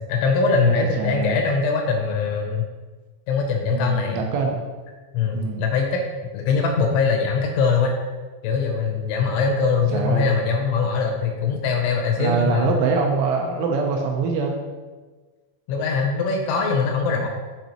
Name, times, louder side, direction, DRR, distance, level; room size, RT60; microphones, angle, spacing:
voice 1, 0.0-2.6 3.3-4.2 5.1-6.0 6.3-8.0 8.4-12.7 15.7-17.3, left 5 dB, 80° left, 2 dB, 2.9 m, -22 dB
voice 2, 0.6-1.4 3.7-4.6 5.3-5.6 9.9-10.3 12.2-14.6 17.1-17.3, right 5 dB, 80° right, 1 dB, 3.0 m, -24 dB
7.7 x 5.3 x 2.9 m, 1.3 s
omnidirectional pair, 5.8 m